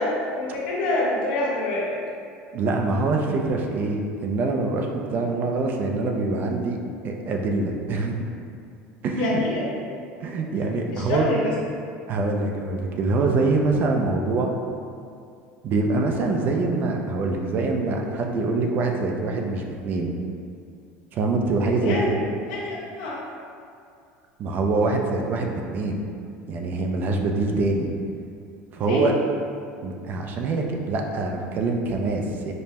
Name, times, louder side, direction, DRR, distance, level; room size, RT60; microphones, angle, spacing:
voice 1, 0.0-2.0 9.2-9.7 10.9-11.5 21.7-22.1 22.5-23.1 28.8-29.1, left 2 dB, 90° left, -5 dB, 0.8 m, -26 dB
voice 2, 2.5-6.8 7.0-8.2 9.0-9.4 10.2-11.3 12.1-14.5 15.6-20.1 21.1-22.2 24.4-26.0 26.5-27.9 28.7-29.1 29.8-32.5, right 3 dB, 45° right, 2 dB, 0.4 m, -24 dB
5.3 x 2.1 x 2.8 m, 2.4 s
cardioid pair, 130°, 5 cm